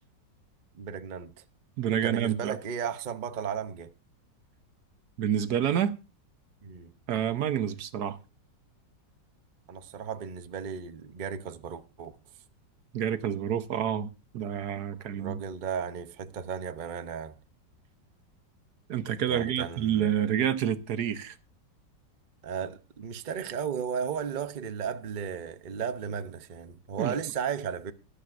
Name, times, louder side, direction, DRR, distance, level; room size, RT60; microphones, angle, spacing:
voice 1, 0.7-1.3 1.9-3.9 6.6-6.9 9.7-12.2 15.0-17.4 19.3-20.1 22.4-27.9, right 7 dB, 85° right, 0.4 m, -35 dB
voice 2, 1.8-2.6 5.2-6.0 7.1-8.2 12.9-15.4 18.9-21.4 27.0-27.1, right 9 dB, 65° right, 1.4 m, -28 dB
20.0 x 11.5 x 2.5 m
omnidirectional pair, 2.0 m